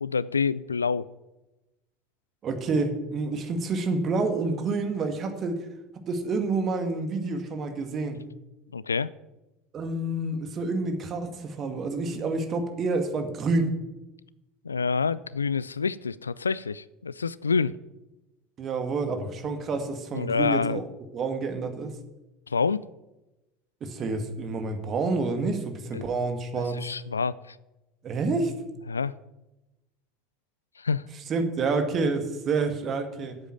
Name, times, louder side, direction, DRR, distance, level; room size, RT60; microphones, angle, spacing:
voice 1, 0.0-1.1 8.7-9.1 14.6-17.8 20.1-20.8 22.5-22.8 25.9-26.0 26.8-27.6 28.9-29.1 30.8-31.0, left 5 dB, 80° left, 19 dB, 0.3 m, -27 dB
voice 2, 2.4-5.7 6.1-8.2 9.7-13.7 18.6-20.8 21.1-21.9 23.8-26.8 28.0-28.5 31.3-33.4, right 3 dB, 35° right, 7 dB, 2.0 m, -28 dB
8.9 x 8.1 x 8.9 m, 1.0 s
figure-of-eight pair, 70°, 0 cm